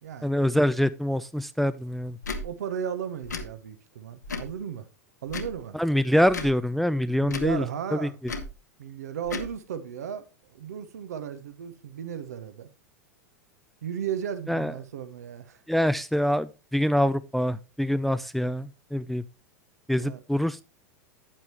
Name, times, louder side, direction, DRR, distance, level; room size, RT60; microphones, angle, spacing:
voice 1, 0.2-2.2 5.7-7.7 7.9-8.1 14.5-14.7 15.7-19.2 19.9-20.6, equal, ahead, 0.4 m, -25 dB
Tick / Tick-tock, 2.2-2.4 3.2-3.5 4.2-4.5 5.3-5.6 6.3-6.5 7.2-7.5 8.2-8.5 9.2-9.5, left 3 dB, 80° left, 1.6 m, -34 dB
voice 2, 2.4-4.9 5.2-5.8 7.2-8.2 8.8-10.2 10.5-12.7 13.8-15.6 20.0-20.2, right 8 dB, 70° right, 1.0 m, -35 dB
9.6 x 8.8 x 3.0 m
figure-of-eight pair, 90°, 9 cm